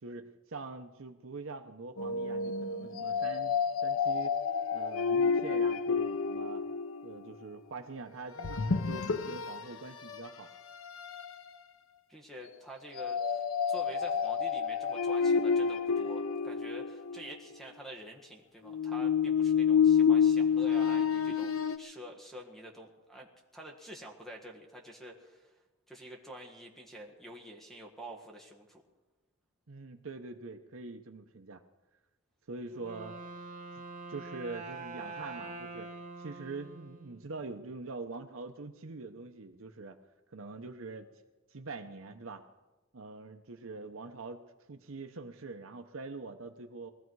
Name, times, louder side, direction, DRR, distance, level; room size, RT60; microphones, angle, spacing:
voice 1, 0.0-3.5 3.8-4.3 4.7-6.6 7.0-10.5 29.7-31.6 32.5-33.2 34.1-35.9 36.2-40.0 40.3-41.1 41.5-42.4 42.9-44.4 44.7-46.9, right 3 dB, 70° right, 6 dB, 0.8 m, -44 dB
sound 1, 2.0-7.3 8.4-9.6 10.1-10.3 10.8-11.3 13.0-17.4 18.7-21.8, left 6 dB, 75° left, 0.7 m, -29 dB
voice 2, 12.1-25.5 25.9-28.8, equal, ahead, 1 dB, 1.6 m, -48 dB
Wind instrument woodwind instrument, 32.7-37.5, right 3 dB, 40° right, 1.7 m, -45 dB
21.0 x 14.5 x 4.7 m, 1.2 s
head